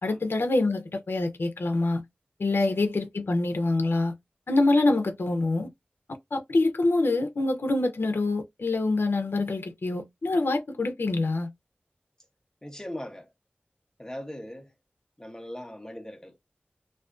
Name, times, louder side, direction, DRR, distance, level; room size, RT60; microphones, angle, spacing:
voice 1, 0.0-2.0 2.4-4.1 4.5-5.7 6.3-11.5, left 2 dB, 80° left, 0.4 m, -25 dB
voice 2, 12.6-13.3 14.0-14.7 15.2-16.4, left 1 dB, 15° left, 0.6 m, -39 dB
2.4 x 2.1 x 2.4 m
wide cardioid pair, 65°, 4 cm